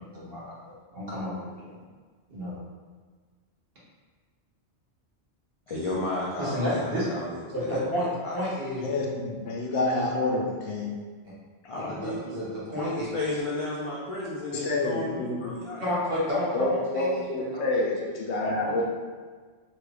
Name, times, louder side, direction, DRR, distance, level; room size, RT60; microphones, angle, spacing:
voice 1, 0.1-0.5 0.9-1.8 2.3-2.6 6.4-7.1 7.5-8.8 11.7-13.1 15.8-16.6 16.9-17.6 18.6-18.8, left 1 dB, 60° right, -8 dB, 1.3 m, -31 dB
voice 2, 5.7-7.8 8.2-8.4 11.6-12.3 12.8-16.0, left 2 dB, 65° left, -5 dB, 0.3 m, -33 dB
voice 3, 8.8-11.0 14.5-15.6 16.5-18.8, left 2 dB, 85° left, 0 dB, 0.9 m, -28 dB
3.0 x 2.4 x 3.4 m, 1.5 s
omnidirectional pair, 1.1 m